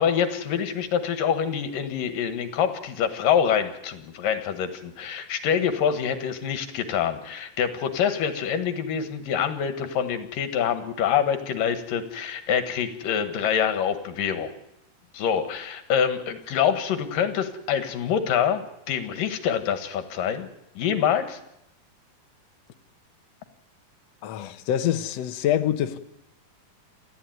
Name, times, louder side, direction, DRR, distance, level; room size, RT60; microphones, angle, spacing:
voice 1, 0.0-14.5 15.1-20.5 20.8-21.4, left 8 dB, 85° left, 3.3 m, -25 dB
voice 2, 24.2-26.0, left 10 dB, 65° left, 1.9 m, -25 dB
28.5 x 14.0 x 9.4 m
omnidirectional pair, 3.8 m